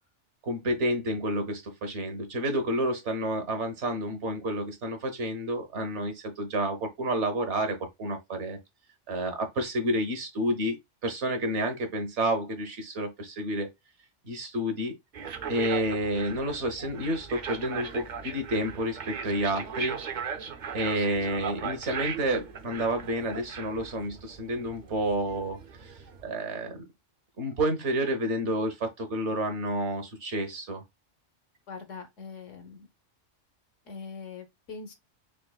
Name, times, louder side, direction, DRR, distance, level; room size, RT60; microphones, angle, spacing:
voice 1, 0.4-8.6 9.1-13.7 14.2-14.9 15.5-20.0 20.7-26.8 27.4-30.8, right 1 dB, 70° right, 1.4 m, -30 dB
sound 1, 15.1-26.3, right 6 dB, 50° right, 0.6 m, -38 dB
voice 2, 31.7-32.9 33.9-34.9, left 5 dB, 90° left, 1.3 m, -42 dB
5.3 x 2.8 x 2.3 m
omnidirectional pair, 1.2 m